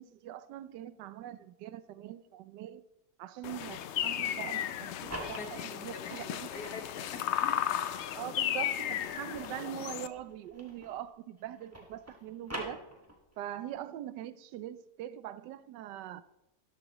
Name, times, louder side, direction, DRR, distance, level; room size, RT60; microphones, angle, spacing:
voice 1, 0.0-2.8 3.2-6.5 8.1-12.8 13.4-16.2, right 12 dB, 90° right, 1.2 m, -42 dB
sound 1, 3.4-10.1, left 10 dB, 85° left, 0.6 m, -34 dB
sound 2, 4.7-6.8 7.3-11.1 11.4-13.4, right 1 dB, 10° right, 1.6 m, -46 dB
voice 2, 5.2-7.6, left 4 dB, 65° left, 2.0 m, -44 dB
13.0 x 11.5 x 3.0 m
omnidirectional pair, 1.8 m